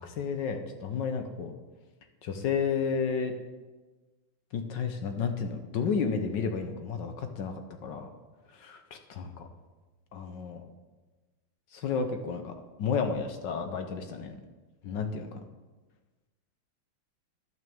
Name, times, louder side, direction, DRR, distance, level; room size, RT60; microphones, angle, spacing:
voice 1, 0.0-1.5 2.2-3.3 4.5-7.5 7.8-8.1 8.5-9.5 10.1-10.6 11.7-14.3 14.8-15.4, left 5 dB, 65° left, 6 dB, 1.5 m, -32 dB
11.0 x 6.3 x 7.0 m, 1.2 s
omnidirectional pair, 2.2 m